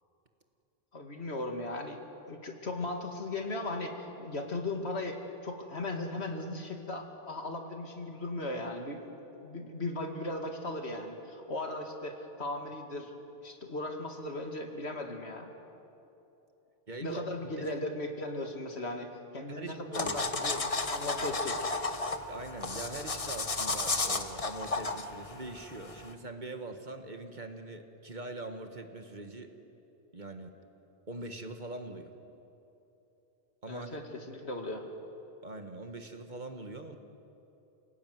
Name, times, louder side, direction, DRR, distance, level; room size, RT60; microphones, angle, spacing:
voice 1, 0.9-2.0 2.3-9.0 9.4-13.1 13.4-15.5 17.0-20.2 20.5-21.7 33.7-34.8, left 2 dB, 80° left, 3 dB, 2.6 m, -37 dB
voice 2, 16.9-17.3 17.6-17.7 19.5-20.6 22.3-29.5 30.1-30.5 31.1-32.1 33.6-34.0 35.4-37.0, right 2 dB, 45° right, 6 dB, 1.7 m, -42 dB
sound 1, 19.9-26.1, left 3 dB, 35° left, 1.2 m, -33 dB
28.5 x 17.5 x 9.5 m, 2.9 s
omnidirectional pair, 1.1 m